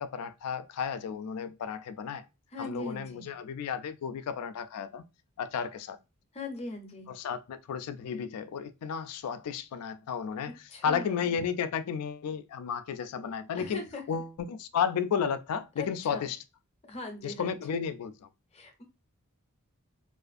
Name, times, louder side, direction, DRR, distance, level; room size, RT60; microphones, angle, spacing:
voice 1, 0.0-2.2 2.6-5.0 5.4-6.0 7.1-10.5 10.8-13.8 14.1-16.4 17.2-18.3, left 7 dB, 90° left, 0.3 m, -33 dB
voice 2, 2.5-3.3 6.3-7.1 10.7-11.2 13.6-14.0 15.8-16.3 16.8-17.5 18.5-18.8, left 2 dB, 30° left, 0.5 m, -40 dB
2.4 x 2.4 x 2.4 m
head